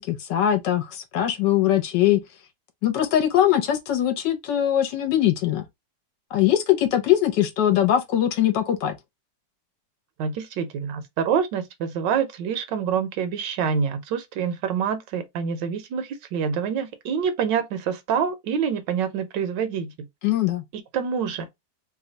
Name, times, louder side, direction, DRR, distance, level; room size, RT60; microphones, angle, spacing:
voice 1, 0.0-2.2 2.8-5.6 6.3-9.0 20.2-20.6, left 11 dB, 70° left, 1.4 m, -21 dB
voice 2, 10.2-19.9 20.9-21.5, right 7 dB, 75° right, 1.3 m, -26 dB
3.3 x 2.3 x 3.8 m
omnidirectional pair, 2.0 m